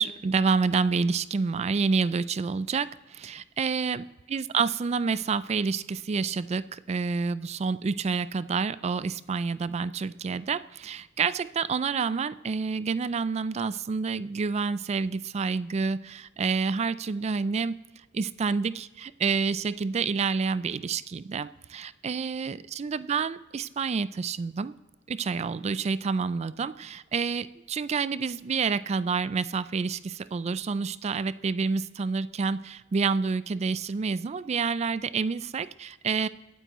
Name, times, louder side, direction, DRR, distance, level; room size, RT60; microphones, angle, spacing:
voice 1, 0.0-4.0 4.3-17.8 18.1-24.7 25.1-36.3, right 5 dB, 35° right, 16 dB, 0.3 m, -28 dB
22.5 x 9.1 x 3.0 m, 1.1 s
head